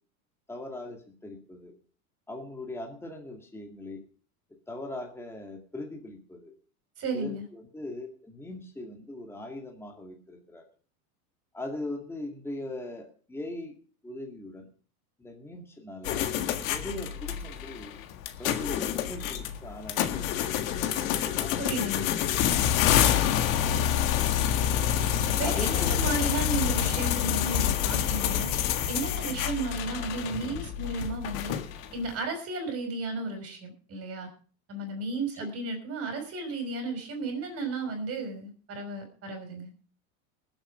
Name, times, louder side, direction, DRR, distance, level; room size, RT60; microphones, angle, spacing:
voice 1, 0.5-1.7 2.3-4.0 4.7-6.5 7.1-10.6 11.5-14.7 15.2-16.3 16.6-18.0 18.4-20.7 21.0-21.8 25.4-26.2, left 1 dB, 5° left, 2 dB, 2.2 m, -40 dB
voice 2, 7.0-7.4 21.6-22.1 25.4-28.5 28.9-31.6 31.9-34.3 34.7-39.7, right 3 dB, 35° right, 4 dB, 5.6 m, -34 dB
sound 1, 16.0-32.0, left 10 dB, 70° left, 1.7 m, -27 dB
20.0 x 7.9 x 5.0 m, 0.41 s
supercardioid pair, 125°, 43 cm